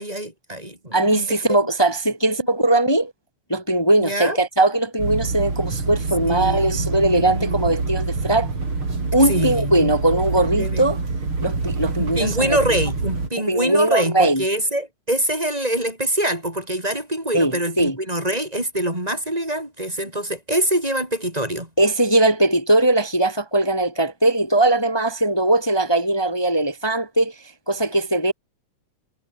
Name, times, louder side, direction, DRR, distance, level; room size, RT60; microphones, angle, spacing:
voice 1, 0.0-1.6 2.6-2.7 4.0-4.4 6.3-7.7 9.2-9.9 10.5-10.9 12.0-21.7, right 1 dB, 10° right, 7.5 m, -25 dB
voice 2, 0.9-3.1 3.5-8.5 9.1-11.0 11.4-12.6 13.4-14.4 17.3-18.0 21.8-27.3 27.7-28.3, right 1 dB, 10° left, 2.1 m, -20 dB
sound 1, 5.0-13.3, right 3 dB, 35° right, 5.7 m, -26 dB
omnidirectional pair, 3.8 m